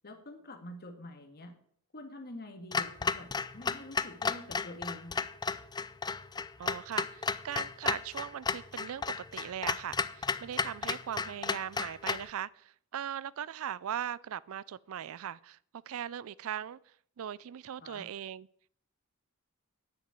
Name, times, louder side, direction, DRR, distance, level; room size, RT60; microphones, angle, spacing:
voice 1, 0.0-1.6 1.9-5.2 17.8-18.0, left 1 dB, 45° left, 1.9 m, -46 dB
Clock, 2.7-12.3, left 5 dB, 20° left, 0.4 m, -34 dB
voice 2, 6.6-15.6 15.9-16.8 17.2-18.5, right 9 dB, 70° right, 0.4 m, -39 dB
9.4 x 6.8 x 8.8 m
head